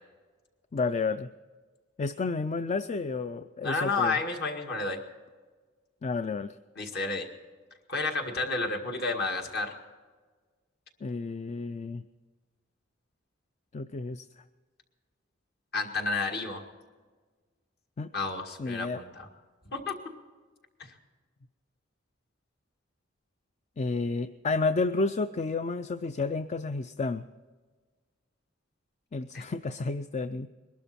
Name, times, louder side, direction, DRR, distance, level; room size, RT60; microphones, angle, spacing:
voice 1, 0.7-1.3 2.0-4.2 6.0-6.6 11.0-12.0 13.7-14.3 18.0-18.1 18.6-19.0 23.8-27.2 29.1-30.5, left 3 dB, 35° left, 11 dB, 0.4 m, -31 dB
voice 2, 3.6-5.0 6.8-7.3 7.9-9.8 15.7-16.6 18.1-19.3 19.7-19.9 20.8-20.9 29.3-29.4, left 3 dB, 55° left, 3 dB, 1.9 m, -31 dB
21.5 x 12.0 x 4.3 m, 1.4 s
head